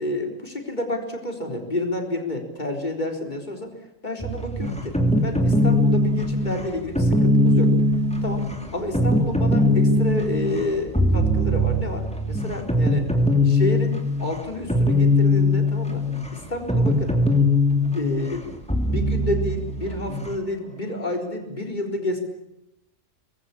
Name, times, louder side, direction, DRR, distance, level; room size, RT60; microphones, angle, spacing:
voice 1, 0.0-7.7 8.2-8.5 8.7-13.1 13.4-16.1 16.3-17.1 17.7-18.5 18.8-22.2, left 1 dB, 35° left, 3 dB, 4.3 m, -29 dB
sound 1, 4.2-20.4, left 1 dB, 5° left, 2.8 m, -21 dB
25.0 x 21.0 x 8.5 m, 0.87 s
omnidirectional pair, 1.4 m